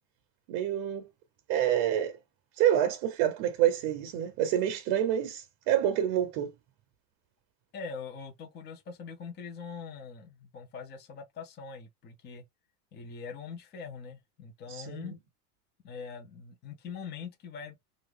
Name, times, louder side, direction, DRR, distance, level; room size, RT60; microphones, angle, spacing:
voice 1, 0.5-1.1 1.5-2.2 2.6-6.5 14.7-15.1, right 11 dB, 45° right, 0.7 m, -27 dB
voice 2, 7.7-12.4 12.9-15.2 15.8-17.8, left 5 dB, 25° left, 0.7 m, -43 dB
2.8 x 2.5 x 3.4 m
supercardioid pair, 140°, 45 cm